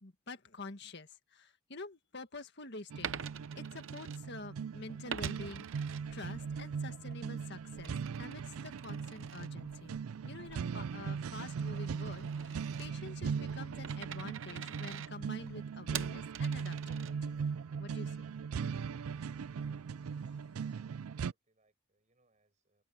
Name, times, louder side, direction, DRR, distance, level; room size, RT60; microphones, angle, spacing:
voice 1, 0.0-3.2 3.6-10.0 10.2-17.4 17.8-18.3, left 2 dB, 50° left, 1.9 m, -48 dB
Coin (dropping), 2.9-4.6 5.1-6.7 7.1-17.5, right 8 dB, 65° right, 0.8 m, -46 dB
sound 1, 2.9-21.3, right 6 dB, 90° right, 0.4 m, -39 dB
voice 2, 20.6-22.8, right 2 dB, 35° right, 6.1 m, -75 dB
head